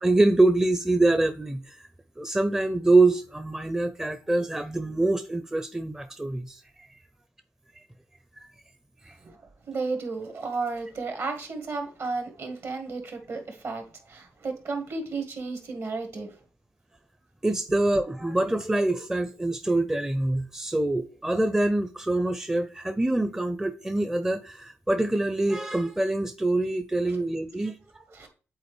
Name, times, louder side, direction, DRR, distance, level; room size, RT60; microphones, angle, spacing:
voice 1, 0.0-1.8 2.2-6.6 17.4-28.3, right 2 dB, 10° right, 0.5 m, -25 dB
voice 2, 9.7-13.8 14.1-16.3 28.1-28.3, right 3 dB, 60° right, 1.7 m, -33 dB
8.0 x 3.9 x 3.3 m
supercardioid pair, 55°, 6 cm